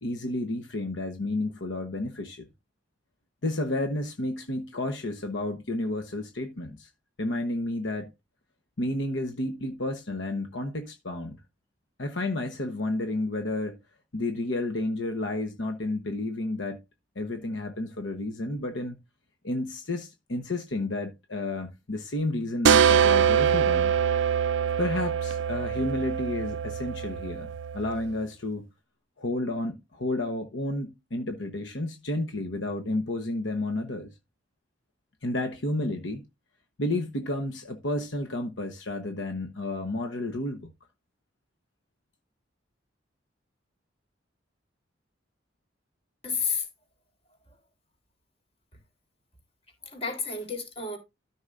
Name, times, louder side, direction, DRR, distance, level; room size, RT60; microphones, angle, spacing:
voice 1, 0.0-2.4 3.4-6.9 7.2-8.1 8.8-11.4 12.0-13.8 14.1-16.8 17.1-19.0 19.4-23.9 24.8-28.7 29.2-34.1 35.2-36.2 36.8-40.7, left 2 dB, 70° left, 1.1 m, -31 dB
sound 1, 22.7-28.1, right 7 dB, 70° right, 0.4 m, -24 dB
voice 2, 46.2-46.7 49.8-51.0, left 5 dB, 35° left, 3.7 m, -31 dB
13.0 x 6.1 x 2.6 m
head